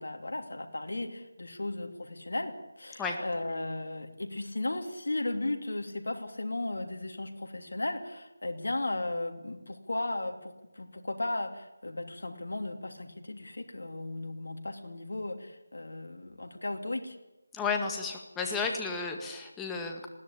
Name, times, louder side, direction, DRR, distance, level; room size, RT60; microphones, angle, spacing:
voice 1, 0.0-17.2, left 2 dB, 75° left, 4 dB, 2.9 m, -35 dB
voice 2, 17.5-20.1, left 4 dB, 5° left, 2 dB, 2.0 m, -33 dB
20.5 x 16.0 x 8.8 m, 1.0 s
figure-of-eight pair, 170°, 0 cm